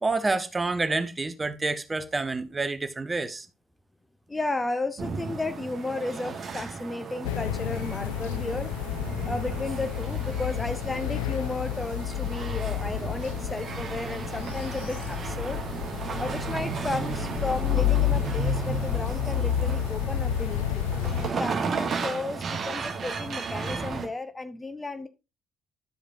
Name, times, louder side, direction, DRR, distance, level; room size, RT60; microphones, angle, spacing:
voice 1, 0.0-3.5, right 3 dB, 20° right, 0.7 m, -28 dB
voice 2, 4.3-8.7 9.3-15.6 16.2-20.9 21.3-25.1, left 2 dB, 15° left, 0.8 m, -33 dB
sound 1, 5.0-24.1, right 5 dB, 40° right, 1.4 m, -34 dB
sound 2, 7.2-21.3, left 12 dB, 70° left, 0.4 m, -30 dB
11.5 x 5.1 x 2.7 m
figure-of-eight pair, 50°, 0 cm